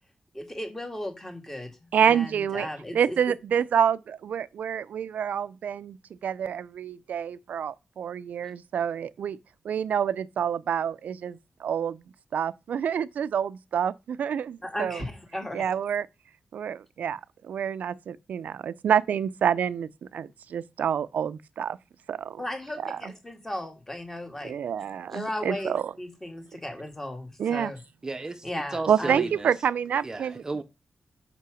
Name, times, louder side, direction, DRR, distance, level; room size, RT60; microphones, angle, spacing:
voice 1, 0.3-3.2 14.6-15.7 22.4-24.5 25.1-27.8 28.4-29.2, left 1 dB, 15° left, 1.7 m, -36 dB
voice 2, 1.9-6.0 6.2-9.4 9.6-12.0 12.3-15.0 15.5-16.1 16.5-21.8 22.1-22.4 22.8-23.0 24.4-25.9 27.4-27.7 28.9-30.4, right 8 dB, 90° right, 0.4 m, -28 dB
voice 3, 28.0-29.5 30.0-30.6, right 3 dB, 25° right, 0.6 m, -34 dB
5.8 x 5.6 x 6.2 m
wide cardioid pair, 155°, 3 cm